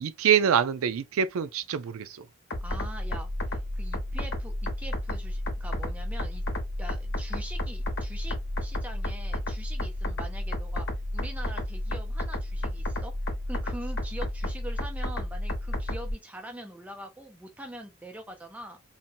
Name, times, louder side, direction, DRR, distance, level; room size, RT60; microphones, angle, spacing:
voice 1, 0.0-2.2, right 8 dB, 80° right, 0.4 m, -25 dB
sound 1, 2.5-16.1, left 1 dB, 55° left, 0.9 m, -32 dB
voice 2, 2.6-6.4 6.8-10.9 11.1-18.8, right 1 dB, 5° right, 0.4 m, -43 dB
2.7 x 2.1 x 2.6 m
head